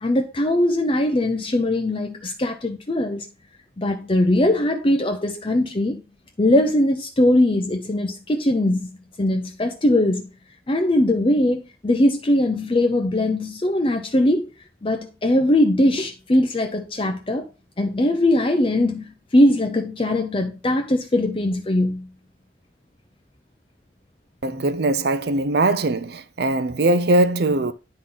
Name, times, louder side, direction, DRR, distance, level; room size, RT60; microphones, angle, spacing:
voice 1, 0.0-3.2 3.8-6.0 6.4-8.8 9.2-10.2 10.7-14.5 14.8-17.5 17.8-19.0 19.3-22.1, left 1 dB, 30° left, 0.6 m, -20 dB
voice 2, 24.4-27.7, right 2 dB, 60° right, 0.5 m, -21 dB
10.0 x 3.8 x 3.9 m
head